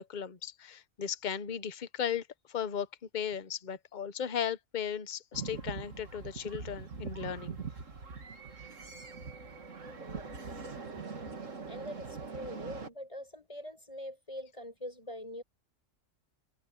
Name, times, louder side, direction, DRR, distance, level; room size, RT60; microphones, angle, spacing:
voice 1, 0.0-2.2 2.5-2.9 3.1-7.6, left 8 dB, 40° left, 1.0 m, -36 dB
sound 1, 5.3-12.9, right 5 dB, 70° right, 2.3 m, -42 dB
voice 2, 10.0-10.6 10.9-11.3 11.7-15.4, left 1 dB, 25° left, 8.0 m, -44 dB
omnidirectional pair, 1.4 m